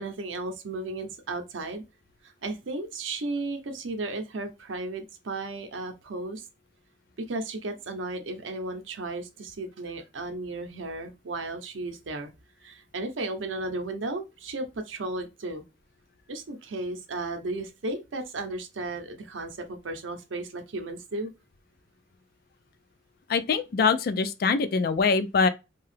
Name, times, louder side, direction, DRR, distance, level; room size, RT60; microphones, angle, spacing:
voice 1, 0.0-1.8 2.2-6.4 7.2-12.3 12.6-15.6 16.3-21.3, right 2 dB, 85° right, 0.6 m, -34 dB
voice 2, 23.3-25.5, left 5 dB, 50° left, 0.3 m, -23 dB
2.7 x 2.3 x 3.2 m
head